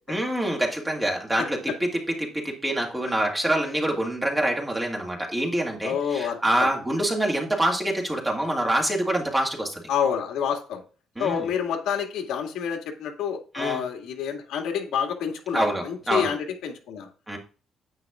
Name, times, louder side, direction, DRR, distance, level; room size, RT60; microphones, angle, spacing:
voice 1, 0.1-9.8 11.2-11.5 13.5-13.8 15.5-16.3 17.3-17.4, right 1 dB, 10° right, 0 dB, 2.0 m, -26 dB
voice 2, 5.8-6.7 9.9-10.8 11.2-17.1, left 8 dB, 85° left, 3 dB, 2.0 m, -28 dB
9.7 x 8.8 x 2.4 m, 0.36 s
cardioid pair, 165°, 0 cm